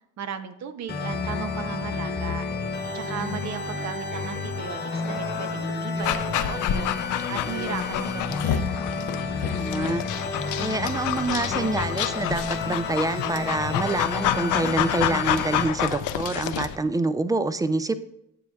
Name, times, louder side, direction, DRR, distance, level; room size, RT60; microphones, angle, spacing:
voice 1, 0.2-2.5 2.9-6.9 7.3-8.8, right 7 dB, 65° right, 9 dB, 0.7 m, -36 dB
sound 1, 0.9-15.7, left 4 dB, 35° left, 1.0 m, -31 dB
sound 2, 4.0-8.6, left 5 dB, 60° left, 1.2 m, -45 dB
Dog, 6.0-16.8, left 10 dB, 75° left, 0.5 m, -28 dB
voice 2, 9.6-10.0 10.6-17.9, right 2 dB, 10° right, 13 dB, 0.3 m, -26 dB
9.6 x 7.2 x 2.3 m, 0.78 s
cardioid pair, 90°, 30 cm